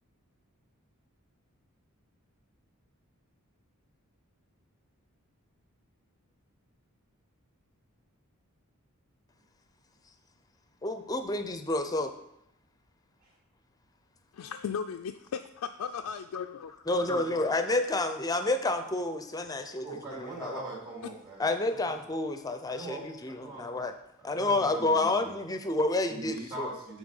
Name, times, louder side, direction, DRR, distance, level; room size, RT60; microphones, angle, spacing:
voice 1, 10.8-12.1 16.9-20.6 21.4-23.9 24.2-26.7, left 2 dB, 15° left, 8 dB, 0.5 m, -29 dB
voice 2, 14.3-16.9, left 7 dB, 85° left, 5 dB, 0.3 m, -36 dB
voice 3, 16.9-17.2 19.8-21.9 22.7-23.8 24.2-25.3 26.1-27.0, right 2 dB, 40° right, -5 dB, 2.6 m, -42 dB
7.9 x 4.1 x 5.4 m, 0.83 s
head